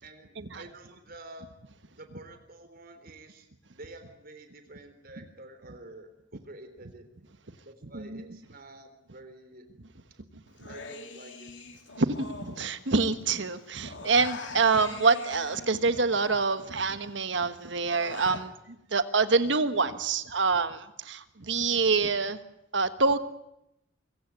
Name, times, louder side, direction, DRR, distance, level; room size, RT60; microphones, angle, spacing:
voice 1, 0.0-1.5 2.0-3.5 3.7-7.1 7.7-9.7 10.7-11.5, right 2 dB, 55° right, 8 dB, 3.6 m, -49 dB
voice 2, 7.9-8.2 10.6-10.7 12.0-22.4 22.7-23.2, right 4 dB, 70° right, 11 dB, 1.4 m, -26 dB
Human voice, 10.6-13.2 13.5-17.0 17.4-18.5, left 4 dB, 75° left, 2.6 m, -44 dB
24.5 x 16.0 x 9.3 m, 0.84 s
head